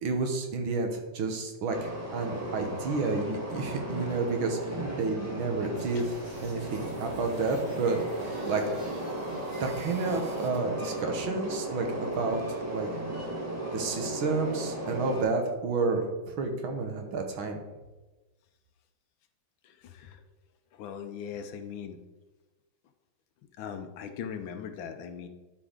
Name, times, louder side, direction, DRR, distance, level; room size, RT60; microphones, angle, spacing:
voice 1, 0.0-8.9 9.6-13.0 13.7-17.6, right 3 dB, 80° right, 4 dB, 1.9 m, -31 dB
Train, 1.7-15.2, right 1 dB, 10° right, 1.1 m, -36 dB
sound 1, 5.7-10.6, right 2 dB, 55° right, 2.7 m, -49 dB
voice 2, 19.6-20.2 20.7-22.0 23.6-25.3, left 7 dB, 75° left, 8 dB, 1.4 m, -39 dB
11.5 x 4.6 x 3.8 m, 1.1 s
omnidirectional pair, 2.2 m